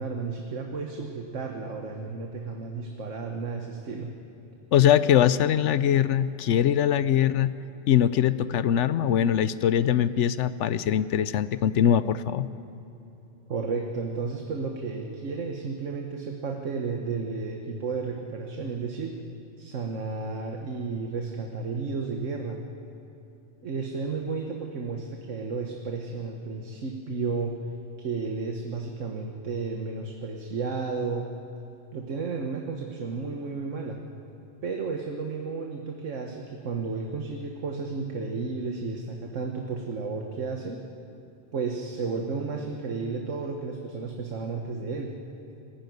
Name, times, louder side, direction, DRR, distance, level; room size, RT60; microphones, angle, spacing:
voice 1, 0.0-4.1 13.5-19.2 19.6-22.6 23.6-27.6 28.0-31.3 31.9-34.0 34.6-40.8 41.5-45.2, right 4 dB, 75° right, 3 dB, 1.6 m, -32 dB
voice 2, 4.7-7.5 7.9-12.5, left 10 dB, 75° left, 15 dB, 0.9 m, -22 dB
20.0 x 15.0 x 9.4 m, 3.0 s
omnidirectional pair, 1.3 m